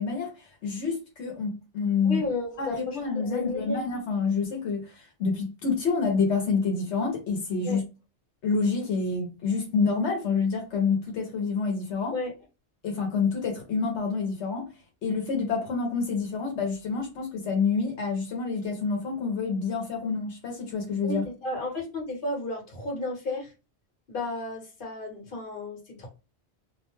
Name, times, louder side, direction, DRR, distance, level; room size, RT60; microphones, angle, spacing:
voice 1, 0.0-2.2 2.6-7.8 8.4-12.1 12.8-14.7 15.0-21.2, left 5 dB, 85° left, 1.1 m, -28 dB
voice 2, 2.0-3.0 3.2-3.8 7.6-7.8 12.1-12.3 21.0-23.5 24.1-26.1, left 2 dB, 55° left, 1.2 m, -32 dB
2.5 x 2.1 x 3.0 m
omnidirectional pair, 1.1 m